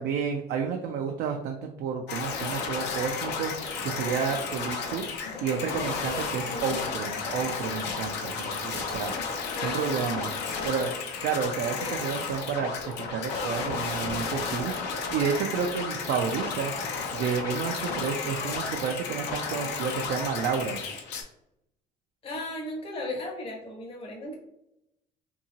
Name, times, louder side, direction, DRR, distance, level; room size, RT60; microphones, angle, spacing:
voice 1, 0.0-5.0 5.4-10.3 10.6-11.0 11.2-12.7 13.1-14.7 15.1-16.7 17.1-20.8, right 6 dB, 80° right, 3 dB, 0.4 m, -30 dB
sound 1, 2.1-21.2, left 4 dB, 85° left, 0.5 m, -33 dB
voice 2, 9.5-10.1 11.8-12.0 22.2-24.4, left 1 dB, 35° left, 1 dB, 0.7 m, -36 dB
2.7 x 2.7 x 2.7 m, 0.83 s
cardioid pair, 110°, 17 cm